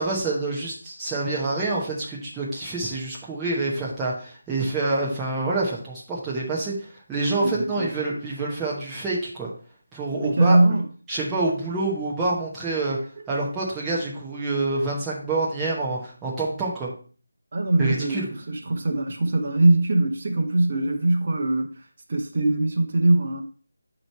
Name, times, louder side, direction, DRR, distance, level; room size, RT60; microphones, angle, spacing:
voice 1, 0.0-6.7 7.1-9.5 9.9-10.6 11.1-13.0 13.3-16.9 17.8-18.3, right 2 dB, 5° right, 1.0 m, -27 dB
voice 2, 7.4-7.9 10.1-10.8 17.5-21.7 22.1-23.4, right 2 dB, 35° right, 1.0 m, -22 dB
8.7 x 3.0 x 4.5 m
figure-of-eight pair, 175°, 0 cm